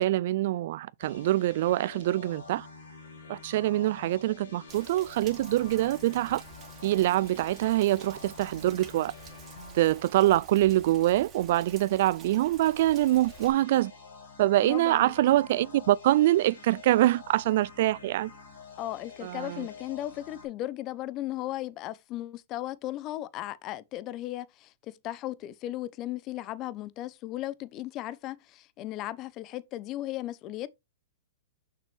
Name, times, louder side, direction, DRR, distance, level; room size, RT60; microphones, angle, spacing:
voice 1, 0.0-2.7 3.3-6.4 6.8-9.1 9.7-13.9 14.4-18.3 19.2-19.7, right 15 dB, 60° right, 0.4 m, -25 dB
sound 1, 1.0-11.0 12.5-20.5, left 4 dB, 75° left, 4.2 m, -49 dB
Rain, 4.7-13.5, right 5 dB, 25° right, 2.8 m, -49 dB
voice 2, 14.6-15.1 18.8-30.7, left 14 dB, 35° left, 0.6 m, -36 dB
6.8 x 6.0 x 3.3 m
hypercardioid pair, 120°, 0 cm